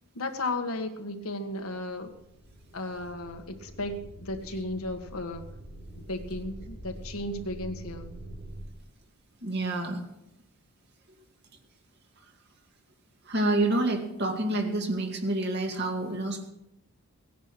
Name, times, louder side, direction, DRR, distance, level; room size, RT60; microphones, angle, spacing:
voice 1, 0.1-2.1 2.7-5.5 6.0-8.1, left 2 dB, 70° left, 5 dB, 1.6 m, -35 dB
sound 1, 2.0-8.6, right 1 dB, 80° right, 4.4 m, -45 dB
voice 2, 9.4-10.0 13.3-16.5, right 2 dB, 50° right, 3 dB, 2.3 m, -28 dB
18.0 x 10.0 x 6.1 m, 0.84 s
head